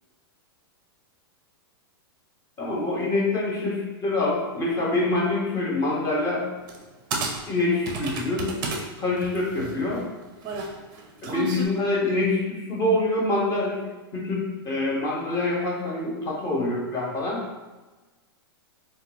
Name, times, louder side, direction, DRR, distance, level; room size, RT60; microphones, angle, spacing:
voice 1, 2.6-6.5 7.5-8.5 9.0-10.0 11.2-13.8 14.1-17.4, left 2 dB, 25° left, -3 dB, 0.8 m, -25 dB
sound 1, 6.7-6.8 7.1-8.8 9.2-11.6, right 3 dB, 35° right, 0.5 m, -31 dB
3.4 x 2.2 x 2.9 m, 1.2 s
hypercardioid pair, 130°, 13 cm